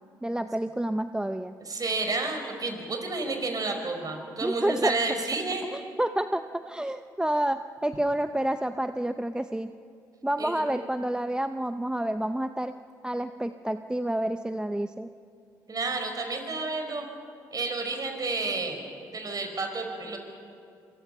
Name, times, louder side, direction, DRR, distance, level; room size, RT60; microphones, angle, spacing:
voice 1, 0.2-1.5 4.4-4.9 5.7-9.7 10.2-12.7 13.0-15.1, right 1 dB, 10° right, 10 dB, 0.7 m, -29 dB
voice 2, 1.7-5.6 10.4-10.6 15.7-17.1 17.5-20.2, right 3 dB, 40° right, 4 dB, 4.9 m, -31 dB
26.0 x 23.5 x 5.6 m, 2.5 s
hypercardioid pair, 50°, 10 cm